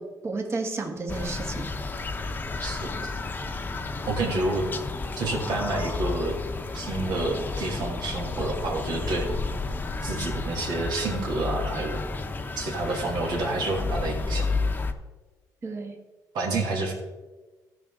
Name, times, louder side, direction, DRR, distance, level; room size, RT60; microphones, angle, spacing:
voice 1, 0.0-1.7 15.6-16.0, right 3 dB, 35° right, 4 dB, 1.7 m, -32 dB
sound 1, 1.1-14.9, left 3 dB, 25° left, 0.9 m, -31 dB
voice 2, 2.6-3.1 4.1-4.7 5.2-6.4 6.7-9.3 10.0-12.0 12.6-14.5 16.3-16.9, right 2 dB, 70° right, -1 dB, 2.9 m, -29 dB
15.5 x 6.3 x 3.9 m, 1.2 s
cardioid pair, 100°, 8 cm